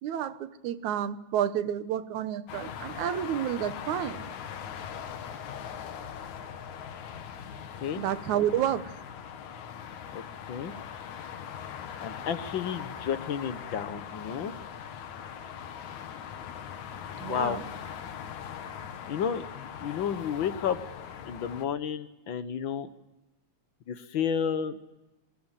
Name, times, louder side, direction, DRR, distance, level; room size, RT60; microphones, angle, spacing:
voice 1, 0.0-4.3 8.0-8.9 17.2-17.6, right 10 dB, 80° right, 13 dB, 2.4 m, -30 dB
sound 1, 2.5-21.7, left 8 dB, 75° left, 2.8 m, -41 dB
voice 2, 12.0-14.5 17.3-17.6 19.1-20.8 21.3-22.9 23.9-24.8, left 8 dB, 50° left, 11 dB, 1.6 m, -31 dB
25.5 x 22.0 x 7.5 m, 1.0 s
omnidirectional pair, 3.4 m